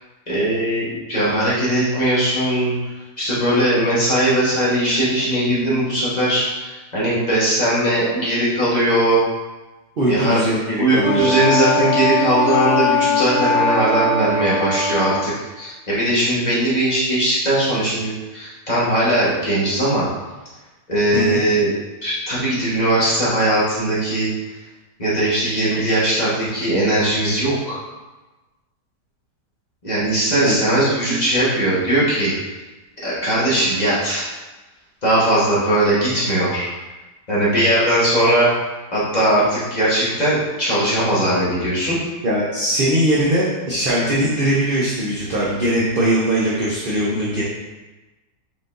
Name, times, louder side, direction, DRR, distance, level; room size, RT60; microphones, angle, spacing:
voice 1, 0.3-2.7 3.2-9.2 10.1-10.4 10.8-20.1 20.9-21.7 22.0-24.3 25.0-27.8 29.8-32.3 33.0-34.3 35.0-36.7 37.3-38.5 38.9-42.0, right 1 dB, 25° left, -9 dB, 1.3 m, -19 dB
voice 2, 10.0-11.3 21.1-21.4 30.4-30.6 42.2-47.4, right 1 dB, 55° right, -6 dB, 0.6 m, -20 dB
Wind instrument woodwind instrument, 11.0-15.3, left 3 dB, 70° left, 1.1 m, -20 dB
5.0 x 3.9 x 2.6 m, 1.2 s
omnidirectional pair, 1.8 m